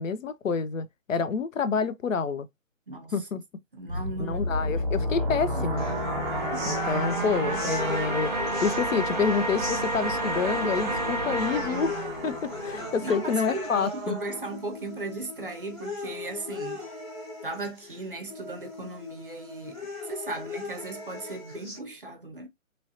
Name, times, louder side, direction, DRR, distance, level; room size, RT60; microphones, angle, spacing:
voice 1, 0.0-2.5 3.1-3.4 4.2-5.9 6.6-8.3 8.6-14.2, left 5 dB, 70° left, 0.6 m, -28 dB
voice 2, 3.7-5.3 5.5-5.7 6.5-6.7 13.0-16.8 17.4-22.5, right 2 dB, 40° right, 0.6 m, -37 dB
sound 1, 3.9-13.4, right 1 dB, 20° right, 1.2 m, -29 dB
sound 2, 5.8-21.8, left 2 dB, 20° left, 1.0 m, -39 dB
3.1 x 2.6 x 2.7 m
hypercardioid pair, 170°, 41 cm